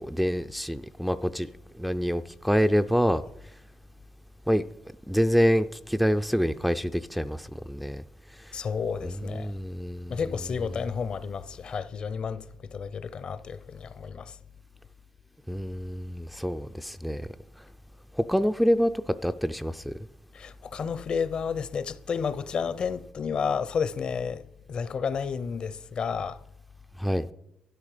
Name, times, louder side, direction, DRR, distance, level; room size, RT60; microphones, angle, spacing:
voice 1, 0.0-1.5 1.8-3.2 4.5-4.6 5.1-8.0 8.4-8.5 9.0-10.2 15.5-17.3 18.1-19.9 27.0-27.2, equal, ahead, 0.4 m, -26 dB
voice 2, 8.5-9.5 10.1-14.4 20.3-26.4, left 6 dB, 45° left, 0.6 m, -31 dB
12.5 x 10.0 x 5.0 m
cardioid pair, 135°, 2 cm